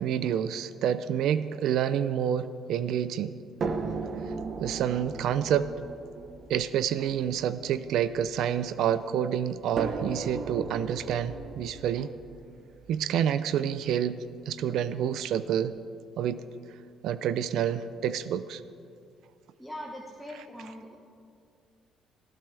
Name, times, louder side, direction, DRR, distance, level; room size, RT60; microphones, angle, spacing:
voice 1, 0.0-3.4 4.6-5.7 6.5-12.1 12.9-15.7 16.2-16.4 17.0-18.6, right 9 dB, 70° right, 14 dB, 0.5 m, -28 dB
sound 1, 3.6-8.8 9.8-13.7 14.7-14.8 15.2-15.3, right 4 dB, 45° right, 1.1 m, -37 dB
voice 2, 19.6-20.9, equal, 5° right, -1 dB, 1.2 m, -41 dB
20.0 x 14.5 x 3.4 m, 2.3 s
cardioid pair, 125°, 0 cm